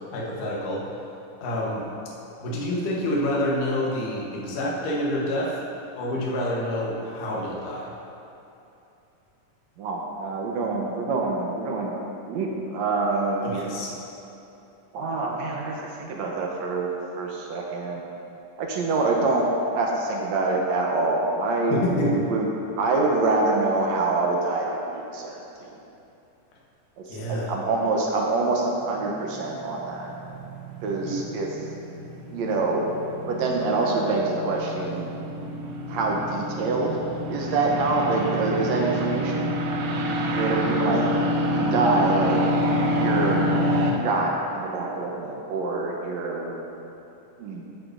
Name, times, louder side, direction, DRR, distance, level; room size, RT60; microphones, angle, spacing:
voice 1, 0.1-0.8 1.4-1.9 2.4-5.6 6.0-7.9 13.4-13.9 21.7-22.2 27.1-27.5 31.1-31.2, left 1 dB, 85° left, -4 dB, 2.7 m, -27 dB
voice 2, 9.8-12.0 12.3-13.6 14.9-16.9 17.2-18.0 18.6-19.5 19.7-21.8 22.1-22.5 22.8-25.7 27.0-30.1 30.8-31.7 32.3-32.9 33.3-35.1 35.9-37.0 37.3-39.6 40.3-41.1 41.4-42.4 43.0-43.4 44.0-46.6 47.4-47.7, right 3 dB, 70° right, -1 dB, 2.0 m, -26 dB
sound 1, 29.3-43.9, equal, 90° right, 2.5 m, -27 dB
13.5 x 9.0 x 2.6 m, 2.8 s
omnidirectional pair, 3.6 m